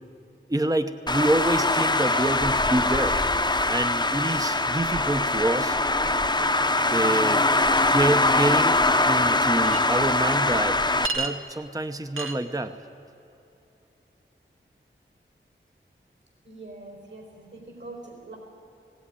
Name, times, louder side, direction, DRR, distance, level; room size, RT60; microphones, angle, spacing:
voice 1, 0.5-3.2 3.7-5.8 6.9-7.4 7.9-8.8 9.1-10.8 11.1-12.7, right 1 dB, 15° right, 8 dB, 0.8 m, -26 dB
Traffic noise roadway noise, 1.1-11.1, left 2 dB, 20° left, 0.9 m, -22 dB
Chink clink, 9.6-9.8 11.0-11.3 12.2-12.4, right 4 dB, 90° right, 1.5 m, -29 dB
voice 2, 16.4-18.4, right 2 dB, 60° right, 2 dB, 4.6 m, -43 dB
20.0 x 17.5 x 9.7 m, 2.9 s
wide cardioid pair, 75°, 21 cm